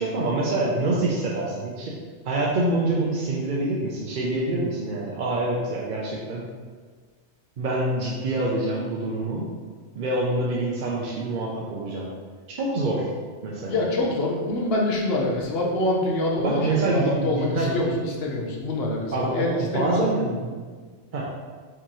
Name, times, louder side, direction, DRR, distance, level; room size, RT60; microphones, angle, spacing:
voice 1, 0.0-2.0 2.2-6.5 7.6-9.5 9.9-12.1 12.5-13.1 13.4-13.8 16.4-17.8 19.1-20.6 21.1-21.2, right 2 dB, 55° right, -3 dB, 0.6 m, -26 dB
voice 2, 13.7-20.1, left 2 dB, 60° left, -2 dB, 1.0 m, -25 dB
4.6 x 3.6 x 3.0 m, 1.5 s
omnidirectional pair, 1.2 m